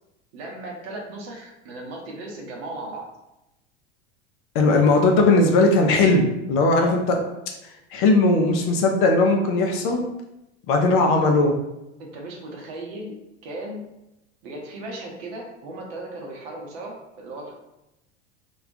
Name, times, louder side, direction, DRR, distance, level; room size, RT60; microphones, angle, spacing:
voice 1, 0.3-3.1 6.7-7.0 12.0-13.1 13.4-13.8 14.4-17.5, right 2 dB, 60° right, -1 dB, 0.8 m, -36 dB
voice 2, 4.5-7.2 7.6-10.0 10.7-11.6, left 2 dB, 40° left, 2 dB, 0.4 m, -18 dB
2.3 x 2.2 x 2.5 m, 0.91 s
hypercardioid pair, 85°, 36 cm